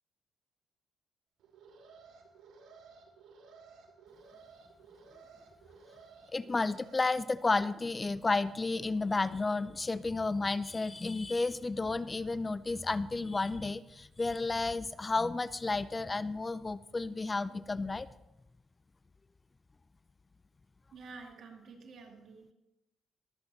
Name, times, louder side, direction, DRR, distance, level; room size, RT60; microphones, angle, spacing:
Alarm, 1.4-7.0, right 4 dB, 80° right, 2.6 m, -56 dB
voice 1, 6.3-18.1, left 3 dB, 25° left, 16 dB, 0.4 m, -32 dB
voice 2, 20.9-22.5, right 4 dB, 60° right, 1 dB, 2.4 m, -50 dB
23.0 x 8.0 x 3.0 m, 0.92 s
cardioid pair, 90°, 0 cm